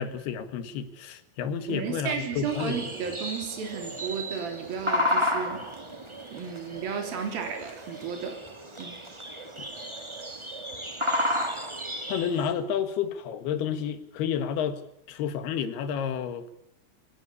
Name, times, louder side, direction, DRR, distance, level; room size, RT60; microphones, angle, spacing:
voice 1, 0.0-2.8 12.1-14.8 15.1-16.5, left 8 dB, 80° left, 11 dB, 3.6 m, -30 dB
voice 2, 1.7-5.7 6.3-8.4 8.8-9.0, right 6 dB, 65° right, 4 dB, 5.1 m, -33 dB
sound 1, 2.4-12.5, left 1 dB, 15° right, 1.0 m, -32 dB
24.5 x 19.0 x 8.4 m, 0.77 s
omnidirectional pair, 4.5 m